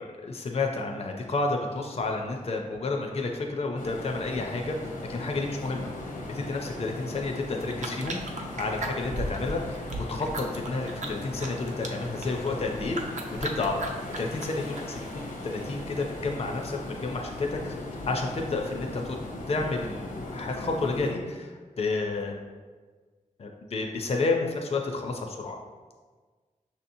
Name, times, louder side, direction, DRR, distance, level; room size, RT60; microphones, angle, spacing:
voice 1, 0.0-5.9 6.3-8.2 8.6-13.0 13.3-19.2 19.5-22.4 23.4-25.6, left 3 dB, 45° left, 2 dB, 0.4 m, -31 dB
sound 1, 3.8-21.1, left 1 dB, 75° left, 0.7 m, -38 dB
sound 2, 7.6-15.1, right 1 dB, 60° right, 0.5 m, -38 dB
6.2 x 2.8 x 2.6 m, 1.4 s
wide cardioid pair, 115°, 14 cm